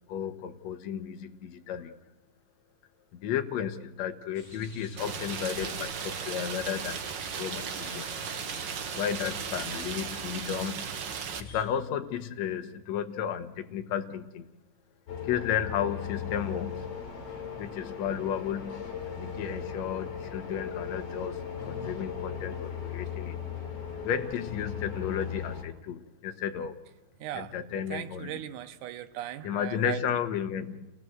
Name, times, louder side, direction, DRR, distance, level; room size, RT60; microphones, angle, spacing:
voice 1, 0.0-1.9 3.1-7.0 7.4-8.4 8.9-11.0 11.4-14.5 15.2-16.8 17.6-18.8 19.2-23.4 24.0-26.8 27.3-28.4 29.4-30.9, left 8 dB, 65° left, 7 dB, 2.3 m, -33 dB
sound 1, 4.3-11.6, left 1 dB, 25° left, 5.4 m, -49 dB
Rain, 5.0-11.4, right 7 dB, 55° right, 1.3 m, -36 dB
sound 2, 15.1-25.6, left 7 dB, 50° left, 3.9 m, -37 dB
voice 2, 27.2-27.5 27.9-30.0, right 12 dB, 85° right, 9 dB, 2.4 m, -38 dB
29.0 x 17.5 x 7.9 m, 0.97 s
omnidirectional pair, 3.5 m